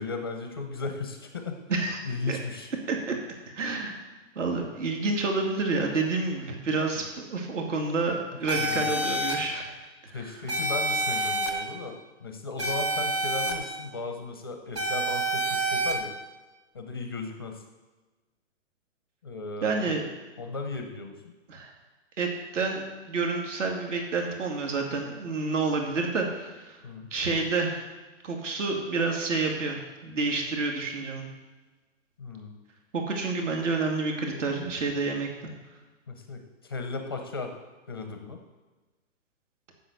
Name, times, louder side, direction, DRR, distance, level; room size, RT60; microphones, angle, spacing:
voice 1, 0.0-1.6 2.0-2.7 8.6-8.9 10.1-16.1 16.7-17.6 19.2-20.0 20.4-21.1 26.8-27.1 32.2-32.5 36.1-37.5 37.9-38.4, left 3 dB, 20° left, 4 dB, 0.5 m, -36 dB
voice 2, 3.5-4.0 4.4-9.7 10.0-10.3 19.6-20.1 21.5-21.7 22.2-26.8 27.1-27.7 28.2-31.3 32.9-35.5, right 3 dB, 70° right, 2 dB, 2.3 m, -29 dB
sound 1, 8.5-9.3 10.5-11.5 12.6-13.5 14.7-15.9, right 1 dB, 20° right, 0.8 m, -27 dB
7.6 x 7.3 x 8.2 m, 1.2 s
hypercardioid pair, 180°, 38 cm